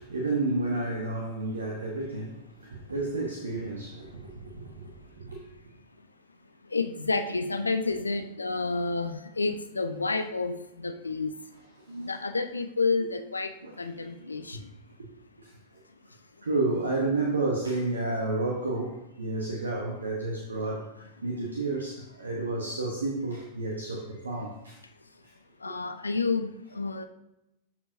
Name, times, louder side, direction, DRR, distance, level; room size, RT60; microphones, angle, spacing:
voice 1, 0.0-5.4 7.8-7.9 11.9-12.2 13.6-14.6 15.4-15.5 16.4-24.8 25.7-25.8, right 2 dB, 75° right, 0.9 m, -31 dB
voice 2, 6.7-10.5 10.8-11.3 12.1-13.5 13.8-14.6 25.6-27.1, left 3 dB, 80° left, 0.5 m, -29 dB
12.5 x 4.5 x 2.6 m
figure-of-eight pair, 90°, 0 cm